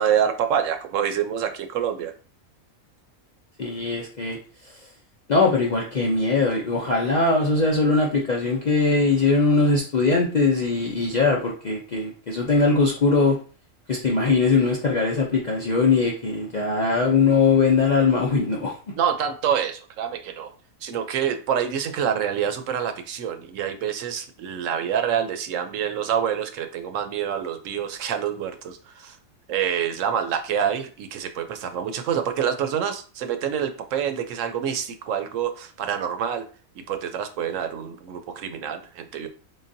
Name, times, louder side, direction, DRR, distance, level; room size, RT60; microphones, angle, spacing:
voice 1, 0.0-2.1 19.0-20.5 20.8-29.2 29.5-36.5 36.8-39.3, right 8 dB, 75° right, 7 dB, 0.9 m, -26 dB
voice 2, 3.6-4.4 5.3-13.4 13.9-18.7, left 4 dB, 55° left, -2 dB, 0.5 m, -21 dB
3.9 x 3.7 x 2.6 m, 0.39 s
omnidirectional pair, 1.4 m